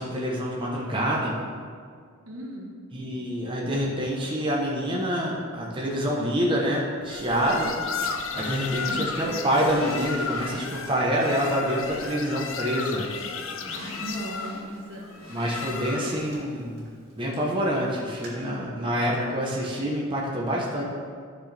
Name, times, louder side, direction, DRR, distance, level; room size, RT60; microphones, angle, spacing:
voice 1, 0.0-1.3 2.9-7.7 8.3-13.1 15.3-16.8 17.2-20.8, equal, 25° right, -3 dB, 0.9 m, -26 dB
voice 2, 2.2-2.8 7.4-7.6 8.9-9.1 14.0-15.2, right 1 dB, 75° right, -1 dB, 1.3 m, -37 dB
sound 1, 7.1-16.3, left 5 dB, 65° left, 0.6 m, -34 dB
Drawer open or close, 8.0-10.9 11.4-12.4 12.8-17.5 18.2-18.3, equal, 50° right, 2.0 m, -43 dB
11.0 x 6.3 x 3.4 m, 2.1 s
head